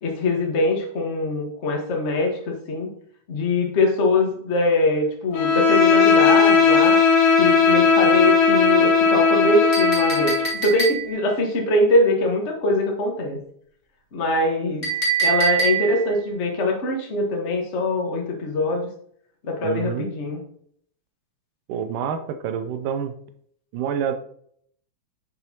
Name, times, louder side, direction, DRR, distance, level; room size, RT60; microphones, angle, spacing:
voice 1, 0.0-2.9 3.3-7.0 7.4-10.3 10.6-13.4 14.1-14.9 15.2-18.9 19.4-20.4, left 2 dB, 70° left, 0 dB, 0.6 m, -22 dB
Bowed string instrument, 5.3-10.5, left 5 dB, 90° left, 2.8 m, -17 dB
Chink clink, 9.7-11.3 14.8-16.1, right 5 dB, 30° left, 1.4 m, -24 dB
voice 2, 19.6-20.1 21.7-23.1 23.7-24.1, right 8 dB, 90° right, 8 dB, 2.2 m, -27 dB
6.9 x 6.5 x 2.9 m, 0.65 s
omnidirectional pair, 3.6 m